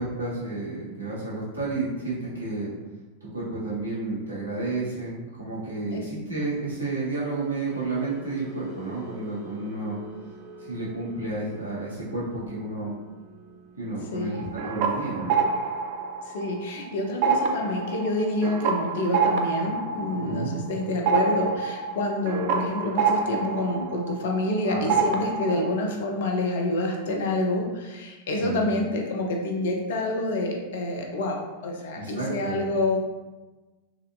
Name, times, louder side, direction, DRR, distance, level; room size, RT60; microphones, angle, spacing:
voice 1, 0.0-2.7 3.3-10.0 10.6-13.0 13.8-15.3 20.2-20.6 24.6-25.3 28.4-28.8 31.9-32.7, right 2 dB, 80° right, -8 dB, 1.3 m, -31 dB
sound 1, 7.0-23.3 23.6-23.9 24.3-24.5, right 1 dB, 25° right, 1.1 m, -50 dB
sound 2, 14.3-16.8 17.1-24.6 24.9-25.7, right 5 dB, 45° right, 0.4 m, -27 dB
voice 2, 16.3-33.0, left 2 dB, 55° left, 1 dB, 0.6 m, -27 dB
4.1 x 2.6 x 2.6 m, 1.2 s
figure-of-eight pair, 90°, 0 cm